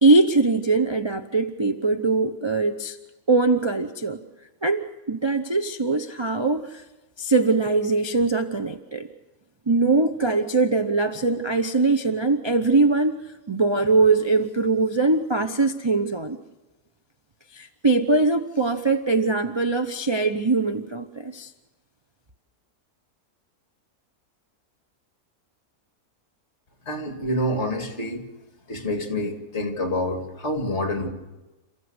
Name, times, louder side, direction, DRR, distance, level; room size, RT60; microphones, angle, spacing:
voice 1, 0.0-3.0 3.3-4.2 4.6-6.8 7.2-9.1 9.7-13.2 13.5-16.4 17.5-21.5, right 3 dB, 30° right, 5 dB, 0.5 m, -22 dB
voice 2, 26.9-28.2 28.7-31.1, left 1 dB, 45° left, 5 dB, 2.5 m, -27 dB
28.5 x 15.0 x 8.0 m, 1.1 s
omnidirectional pair, 1.7 m